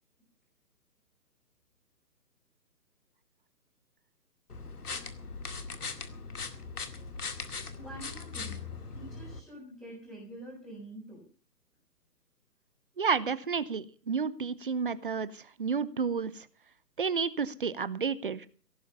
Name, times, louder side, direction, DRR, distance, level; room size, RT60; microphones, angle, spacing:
sound 1, 4.5-9.4, left 4 dB, 65° left, 2.2 m, -40 dB
voice 1, 7.7-8.6 8.9-11.2, right 1 dB, 5° left, -7 dB, 5.4 m, -46 dB
voice 2, 13.0-16.5 17.0-18.5, right 5 dB, 35° right, 18 dB, 0.8 m, -31 dB
17.5 x 9.5 x 6.9 m, 0.40 s
figure-of-eight pair, 140°, 49 cm